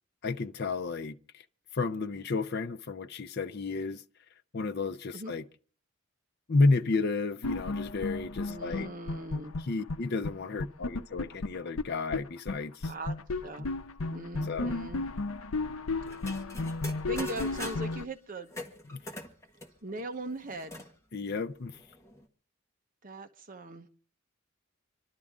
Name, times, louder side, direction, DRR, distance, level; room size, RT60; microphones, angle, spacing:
voice 1, 0.2-1.4 1.7-4.0 4.5-5.4 6.5-8.9 9.7-12.9 13.6-13.7 14.5-14.8 18.9-19.0 21.1-21.8, left 3 dB, 50° left, 0.6 m, -31 dB
sound 1, 7.4-10.0 10.2-10.3 10.6-12.2 12.5-12.6 12.8-18.1, left 3 dB, 85° left, 0.7 m, -33 dB
voice 2, 8.5-9.5 12.8-13.2 13.4-13.7 14.1-15.0 16.8-18.5 19.8-20.8 23.0-23.9, right 1 dB, 40° right, 1.0 m, -39 dB
sound 2, 16.1-18.0 18.5-20.9 21.3-21.4 21.6-22.2, left 1 dB, 15° left, 1.5 m, -43 dB
26.5 x 12.0 x 3.7 m
head